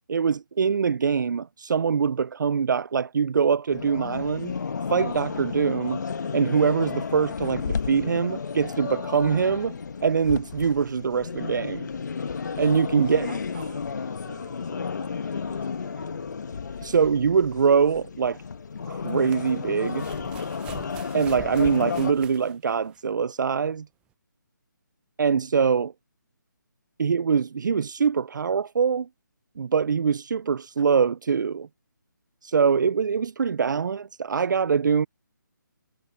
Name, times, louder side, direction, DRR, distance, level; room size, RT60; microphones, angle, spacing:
voice 1, 0.1-4.5 4.9-6.0 6.3-9.8 10.0-11.9 12.6-13.3 16.8-18.4 18.9-20.1 21.1-23.9 25.2-25.9 27.0-29.1 29.6-31.7 32.4-35.1, right 6 dB, 65° right, 0.5 m, -23 dB
sound 1, 3.7-22.1, left 5 dB, 60° left, 1.8 m, -32 dB
voice 2, 12.2-16.3, right 12 dB, 30° right, 1.8 m, -50 dB
sound 2, 16.8-16.9 18.8-23.1 24.1-24.2, right 13 dB, 10° right, 0.6 m, -44 dB
figure-of-eight pair, 160°, 11 cm